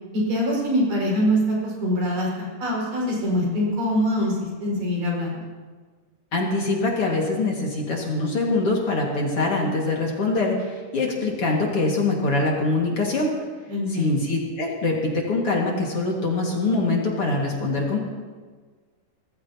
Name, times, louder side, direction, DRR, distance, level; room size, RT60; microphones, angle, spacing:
voice 1, 0.1-5.5 13.7-14.2, equal, 75° right, -3 dB, 6.9 m, -24 dB
voice 2, 6.3-13.3 13.9-18.0, left 2 dB, 45° left, -2 dB, 2.7 m, -24 dB
24.5 x 19.0 x 2.9 m, 1.5 s
omnidirectional pair, 3.8 m